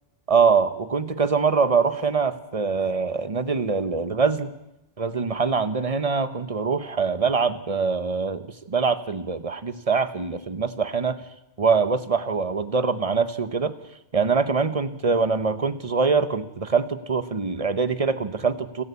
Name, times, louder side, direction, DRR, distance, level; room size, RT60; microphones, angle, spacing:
voice 1, 0.3-4.6 5.0-11.2 11.6-13.7 14.1-18.8, right 5 dB, 35° right, 12 dB, 1.1 m, -23 dB
29.0 x 11.0 x 8.4 m, 0.89 s
omnidirectional pair, 1.1 m